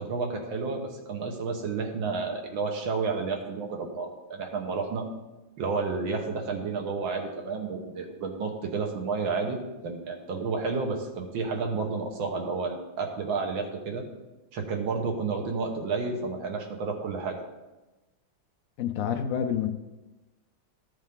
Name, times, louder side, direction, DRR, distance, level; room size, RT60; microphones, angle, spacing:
voice 1, 0.0-5.1 5.6-14.0 14.5-17.4, right 4 dB, 85° right, 3 dB, 2.0 m, -31 dB
voice 2, 18.8-19.7, left 8 dB, 75° left, 5 dB, 0.7 m, -28 dB
13.5 x 7.3 x 3.7 m, 1.1 s
omnidirectional pair, 2.1 m